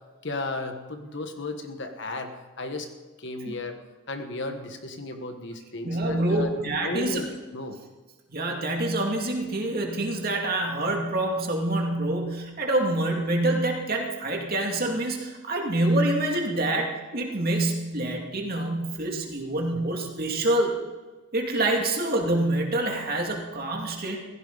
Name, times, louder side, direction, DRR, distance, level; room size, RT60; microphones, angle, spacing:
voice 1, 0.2-2.3 2.6-2.9 3.2-3.8 4.1-6.5 6.8-7.8, left 2 dB, 55° left, 6 dB, 1.5 m, -34 dB
voice 2, 5.8-7.2 8.3-20.8 21.3-24.2, right 1 dB, 45° right, 1 dB, 2.5 m, -26 dB
16.0 x 15.5 x 4.1 m, 1.3 s
head